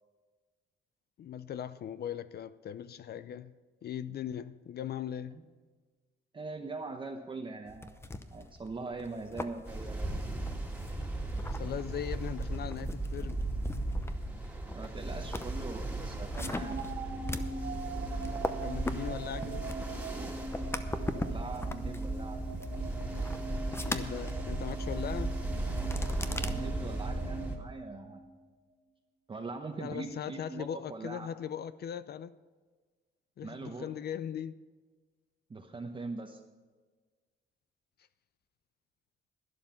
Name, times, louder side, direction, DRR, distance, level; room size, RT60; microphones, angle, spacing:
voice 1, 1.2-3.5 3.8-5.4 11.5-13.5 18.6-19.7 23.8-25.3 29.8-32.3 33.4-34.5, left 9 dB, 55° left, 0.5 m, -39 dB
voice 2, 6.3-8.0 8.3-10.2 14.7-16.8 21.2-22.4 26.4-28.2 29.3-31.3 33.4-33.9 35.5-36.4, right 3 dB, 25° right, 1.0 m, -42 dB
sound 1, 7.7-26.5, left 2 dB, 10° left, 0.7 m, -42 dB
Ocean, 9.7-27.6, right 2 dB, 5° right, 2.1 m, -36 dB
sound 2, 16.4-28.5, right 3 dB, 80° right, 1.8 m, -42 dB
12.0 x 11.0 x 5.7 m
cardioid pair, 125°, 20 cm